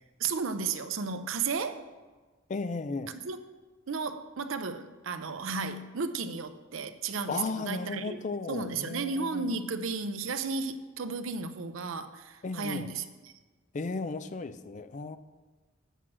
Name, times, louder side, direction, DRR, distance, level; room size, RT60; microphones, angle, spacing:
voice 1, 0.2-1.8 3.2-3.4 3.9-8.2 8.5-13.3, right 4 dB, 70° right, 10 dB, 0.6 m, -34 dB
voice 2, 2.5-3.2 7.3-9.6 12.4-12.9 13.7-15.2, left 3 dB, 35° left, 12 dB, 0.4 m, -35 dB
8.1 x 6.0 x 6.1 m, 1.3 s
head